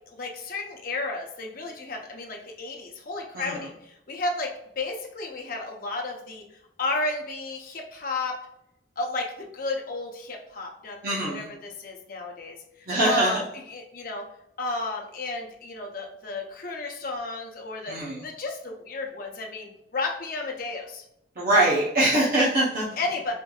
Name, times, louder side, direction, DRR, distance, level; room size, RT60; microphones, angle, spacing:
voice 1, 0.1-6.4 6.8-8.4 9.0-13.4 13.7-14.2 14.6-17.9 18.2-21.0 23.0-23.3, left 3 dB, 50° left, 1 dB, 0.7 m, -33 dB
voice 2, 11.0-11.5 12.9-13.4 17.9-18.2 21.4-23.0, right 1 dB, 50° right, -7 dB, 0.8 m, -23 dB
4.4 x 2.6 x 2.3 m, 0.80 s
head